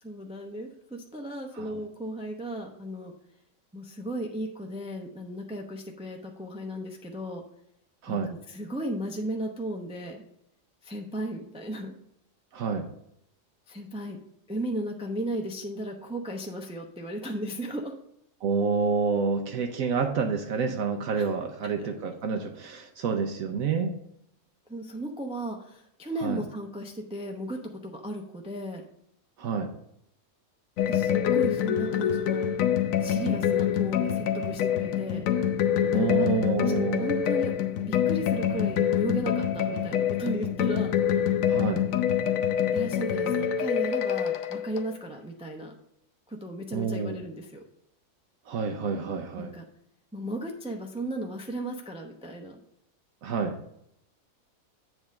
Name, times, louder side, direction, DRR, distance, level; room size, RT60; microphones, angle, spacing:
voice 1, 0.0-3.1 3.7-7.4 8.1-10.2 10.8-11.9 13.7-14.2 14.5-18.0 21.2-21.3 21.8-21.9 24.7-28.8 30.9-32.5 33.0-35.2 35.9-37.5 37.9-40.9 42.7-45.7 46.3-47.6 49.4-49.6 50.1-52.6, right 1 dB, 5° right, 2 dB, 0.6 m, -35 dB
voice 2, 12.5-12.9 18.4-23.9 26.2-26.4 29.4-29.7 35.9-37.1 41.5-41.8 46.7-47.2 48.5-49.5 53.2-53.6, right 5 dB, 75° right, 4 dB, 1.2 m, -28 dB
sound 1, 30.8-44.9, left 9 dB, 75° left, 1.1 m, -26 dB
8.0 x 3.6 x 6.4 m, 0.74 s
omnidirectional pair, 1.5 m